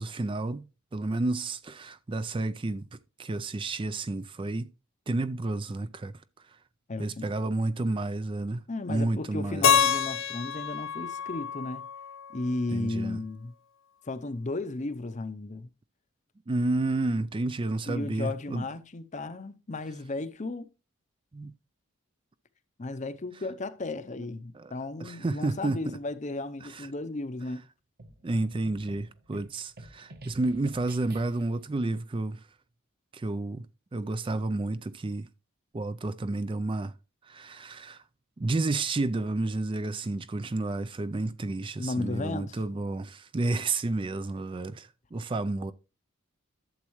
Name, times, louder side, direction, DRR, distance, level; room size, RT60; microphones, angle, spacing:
voice 1, 0.0-4.7 5.1-6.1 6.5-6.6 7.0-8.6 8.9-9.8 12.7-13.2 16.5-18.7 21.3-21.5 24.5-24.7 25.0-26.0 26.6-26.9 28.2-32.5 33.1-33.7 33.9-35.3 35.7-36.9 37.2-38.0 38.4-45.7, right 2 dB, 25° right, 0.4 m, -31 dB
voice 2, 6.9-7.2 8.7-11.8 12.3-13.5 14.0-15.7 17.9-20.7 22.8-27.7 41.8-42.6, left 2 dB, 35° left, 0.6 m, -34 dB
Keyboard (musical), 9.6-12.6, left 8 dB, 70° left, 1.0 m, -27 dB
sound 1, 28.0-31.6, right 2 dB, 50° right, 1.3 m, -49 dB
12.0 x 7.3 x 3.1 m
head